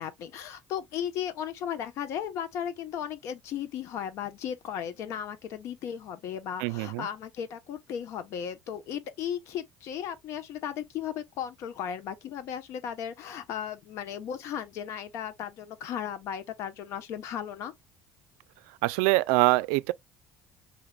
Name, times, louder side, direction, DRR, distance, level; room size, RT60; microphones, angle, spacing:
voice 1, 0.0-17.7, left 9 dB, 65° left, 1.0 m, -36 dB
voice 2, 6.6-7.1 18.8-19.9, right 22 dB, 85° right, 0.3 m, -24 dB
5.5 x 3.3 x 2.3 m
supercardioid pair, 90°, 5 cm